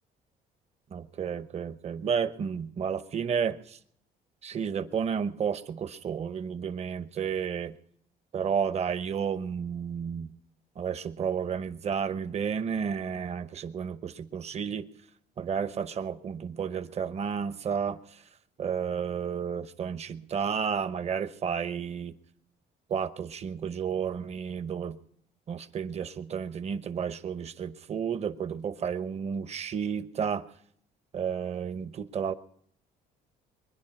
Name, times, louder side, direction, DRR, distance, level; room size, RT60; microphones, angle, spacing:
voice 1, 0.9-3.8 4.4-7.8 8.3-10.3 10.8-14.9 15.4-18.0 18.6-22.1 22.9-25.0 25.5-30.4 31.1-32.3, right 7 dB, 40° right, 13 dB, 0.9 m, -32 dB
22.5 x 10.5 x 5.9 m, 0.67 s
cardioid pair, 110°, 17 cm